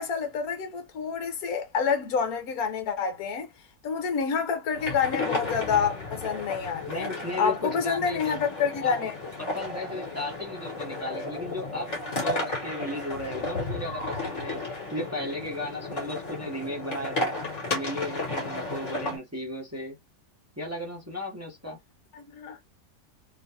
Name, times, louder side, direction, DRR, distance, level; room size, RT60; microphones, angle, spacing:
voice 1, 0.0-3.5 3.8-7.1 7.4-9.1 22.1-22.6, left 6 dB, 65° left, 1.3 m, -28 dB
sound 1, 4.7-19.2, left 2 dB, 45° left, 1.9 m, -33 dB
voice 2, 6.9-8.5 8.8-9.1 9.4-14.6 14.9-17.3 17.7-20.0 20.6-21.8, left 1 dB, 15° right, 0.7 m, -35 dB
3.6 x 2.5 x 2.8 m
omnidirectional pair, 1.8 m